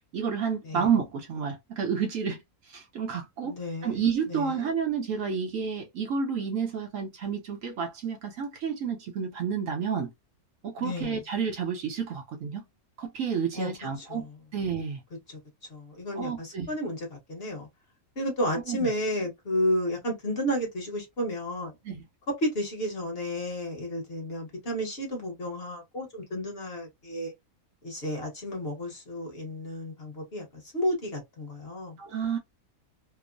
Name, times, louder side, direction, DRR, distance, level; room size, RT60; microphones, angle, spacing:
voice 1, 0.1-2.4 2.7-3.6 3.8-10.1 10.6-12.6 13.0-15.0 16.2-16.7 18.7-18.9 21.8-22.0 32.0-32.4, right 6 dB, 65° right, 1.0 m, -30 dB
voice 2, 3.4-4.0 4.3-4.7 10.8-11.2 13.5-13.7 14.0-14.3 15.3-15.4 15.7-17.7 18.2-21.8 22.4-27.3 27.8-30.5 30.7-32.0, equal, 45° left, 1.1 m, -32 dB
2.9 x 2.0 x 2.4 m
omnidirectional pair, 1.6 m